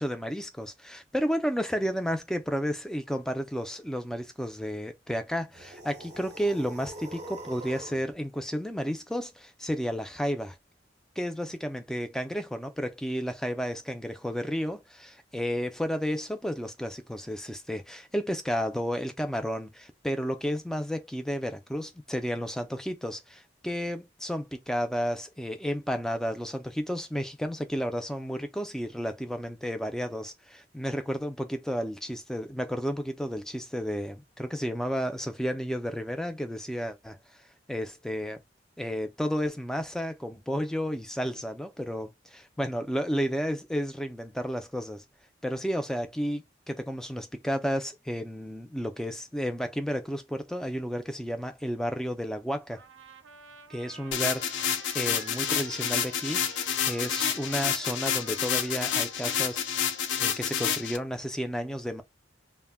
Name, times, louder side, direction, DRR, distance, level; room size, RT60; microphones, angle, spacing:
voice 1, 0.0-10.6 11.2-37.2 37.7-38.4 38.8-45.0 45.4-52.8 53.7-59.9 60.2-62.0, equal, 5° left, 0.3 m, -32 dB
sound 1, 5.5-8.1, right 1 dB, 40° right, 0.7 m, -43 dB
Trumpet, 52.7-60.2, right 6 dB, 85° right, 0.5 m, -50 dB
sound 2, 54.1-61.0, left 8 dB, 75° left, 0.4 m, -29 dB
2.1 x 2.1 x 3.3 m
head